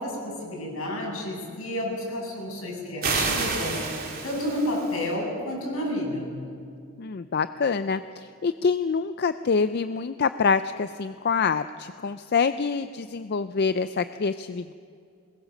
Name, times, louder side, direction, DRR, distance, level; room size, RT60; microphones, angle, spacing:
voice 1, 0.0-3.8 4.2-6.4, left 1 dB, 75° left, -2 dB, 7.8 m, -30 dB
sound 1, 3.0-5.1, right 4 dB, 45° right, 3.3 m, -29 dB
voice 2, 7.0-14.7, left 5 dB, 50° left, 11 dB, 0.5 m, -26 dB
22.5 x 21.0 x 6.5 m, 2.4 s
head